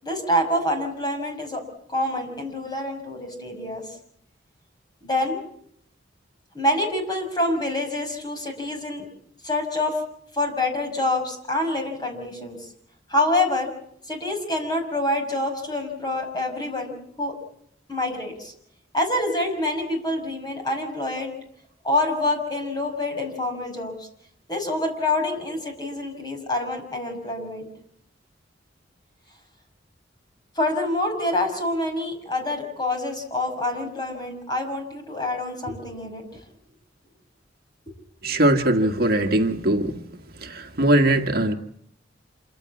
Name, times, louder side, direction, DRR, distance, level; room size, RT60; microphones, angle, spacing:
voice 1, 0.0-1.6 1.9-3.8 5.0-5.4 6.5-9.0 9.4-10.0 10.3-12.7 13.1-13.7 14.1-17.4 17.9-18.5 18.9-21.3 21.8-24.1 24.5-27.7 30.6-36.2, left 1 dB, 20° left, 4 dB, 6.1 m, -26 dB
voice 2, 38.2-40.1 40.4-41.5, right 1 dB, 55° right, 5 dB, 1.8 m, -21 dB
27.0 x 15.5 x 8.4 m, 0.68 s
head